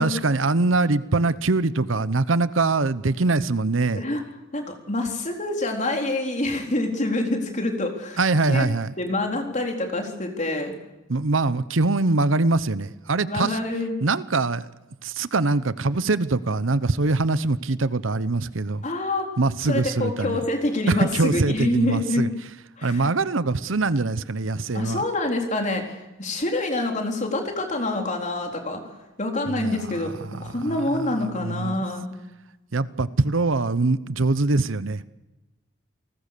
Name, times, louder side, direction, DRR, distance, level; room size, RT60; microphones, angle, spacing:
voice 1, 0.0-4.0 8.2-8.9 11.1-13.6 14.0-14.7 15.0-18.8 19.4-20.4 20.9-22.3 22.8-25.0 29.5-30.1 30.7-31.1 31.4-31.8 32.7-35.1, right 3 dB, 85° right, 16 dB, 0.9 m, -23 dB
voice 2, 4.5-8.2 8.5-8.7 9.0-10.7 13.2-13.9 18.8-19.3 19.7-22.3 22.8-23.1 24.7-28.8 29.2-32.1, left 2 dB, 40° left, 3 dB, 4.0 m, -26 dB
29.0 x 19.0 x 6.8 m, 1.1 s
head